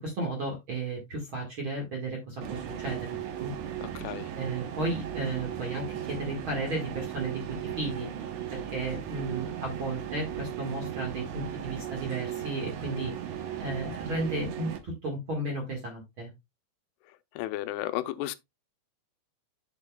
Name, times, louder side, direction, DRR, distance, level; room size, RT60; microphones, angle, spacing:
voice 1, 0.0-3.5 4.3-8.1 8.5-13.1 13.6-16.3, right 2 dB, 50° right, 1.6 m, -34 dB
sound 1, 2.4-14.8, right 10 dB, 80° right, 1.7 m, -37 dB
voice 2, 3.8-4.3 17.4-18.4, left 15 dB, 85° left, 2.7 m, -33 dB
8.1 x 7.0 x 2.3 m
omnidirectional pair, 4.7 m